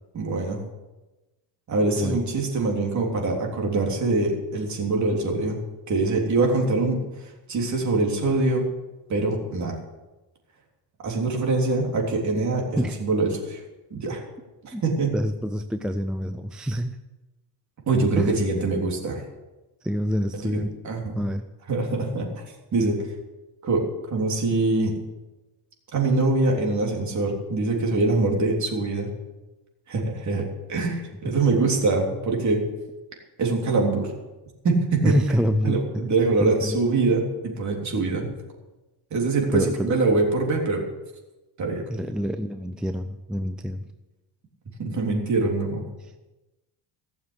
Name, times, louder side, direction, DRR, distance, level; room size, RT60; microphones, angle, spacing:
voice 1, 0.1-0.6 1.7-5.6 5.9-8.7 9.1-9.8 11.0-13.6 13.9-14.2 14.6-15.1 17.9-19.2 20.3-21.2 21.7-22.4 22.7-23.1 23.6-25.0 25.9-29.1 29.9-32.7 33.4-34.1 34.6-35.1 35.6-38.3 39.1-40.8 41.6-41.8 44.8-45.8, right 3 dB, 40° right, 0 dB, 3.4 m, -24 dB
voice 2, 15.1-17.0 18.2-18.4 19.8-20.7 21.2-21.4 31.3-31.4 35.0-36.1 36.4-36.8 39.5-39.9 41.9-43.9, equal, ahead, 7 dB, 0.4 m, -26 dB
16.0 x 7.1 x 8.2 m, 1.1 s
cardioid pair, 145°, 44 cm